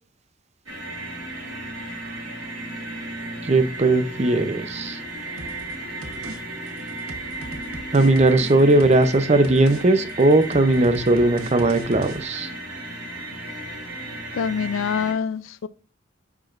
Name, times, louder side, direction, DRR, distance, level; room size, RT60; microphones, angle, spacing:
sound 1, 0.7-15.1, right 1 dB, 70° right, 3.1 m, -35 dB
voice 1, 3.4-5.0 7.9-12.5, right 2 dB, 30° right, 0.6 m, -18 dB
sound 2, 5.4-5.7 6.0-6.4 6.7-9.2 9.4-9.8 10.1-12.2, right 2 dB, 90° right, 1.1 m, -39 dB
voice 2, 14.3-15.7, left 6 dB, 75° left, 0.4 m, -25 dB
9.5 x 5.9 x 2.5 m
head